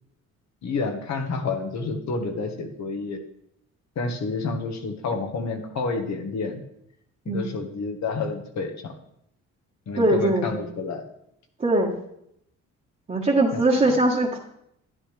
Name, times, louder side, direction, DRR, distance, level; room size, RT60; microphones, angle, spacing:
voice 1, 0.6-3.2 3.9-6.6 7.2-8.9 9.9-11.0 13.5-14.0, left 4 dB, 65° left, 4 dB, 1.5 m, -29 dB
voice 2, 10.0-10.6 11.6-11.9 13.1-14.4, right 2 dB, 25° right, -5 dB, 1.5 m, -21 dB
11.5 x 10.5 x 3.4 m, 0.76 s
cardioid pair, 90°, 30 cm